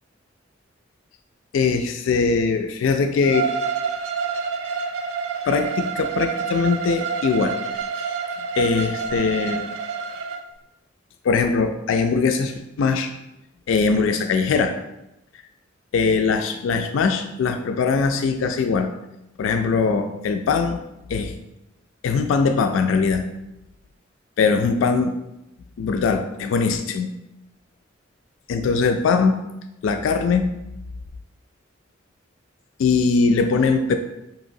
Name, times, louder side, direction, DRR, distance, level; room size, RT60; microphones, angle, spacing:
voice 1, 1.5-3.5 5.5-7.6 8.0-8.1 8.6-9.7 11.2-13.2 13.7-14.8 15.9-18.9 19.4-20.8 21.1-21.4 22.0-23.3 24.4-25.1 25.8-27.1 28.5-29.4 29.8-30.5 32.8-34.0, left 4 dB, 85° left, 6 dB, 0.3 m, -21 dB
Bowed string instrument, 3.2-10.4, right 5 dB, 80° right, 0.4 m, -28 dB
5.5 x 2.9 x 2.6 m, 0.90 s
head